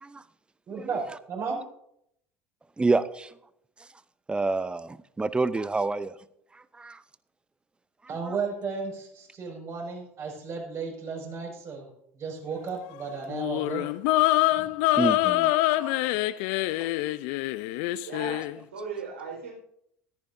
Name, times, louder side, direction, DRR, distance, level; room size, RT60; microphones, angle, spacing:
voice 1, 0.7-1.6 8.1-11.9 12.1-13.9 14.5-14.7, right 5 dB, 40° right, 1 dB, 5.9 m, -34 dB
voice 2, 2.8-3.3 3.8-3.9 4.3-6.1 6.5-7.0 8.2-8.3 14.9-16.0 16.8-16.9, right 3 dB, 15° right, 16 dB, 0.7 m, -28 dB
sound 1, 13.3-18.5, left 17 dB, 60° left, 0.5 m, -25 dB
voice 3, 18.0-19.5, right 5 dB, 80° right, 1 dB, 4.5 m, -38 dB
14.0 x 14.0 x 2.7 m, 0.73 s
hypercardioid pair, 70°, 7 cm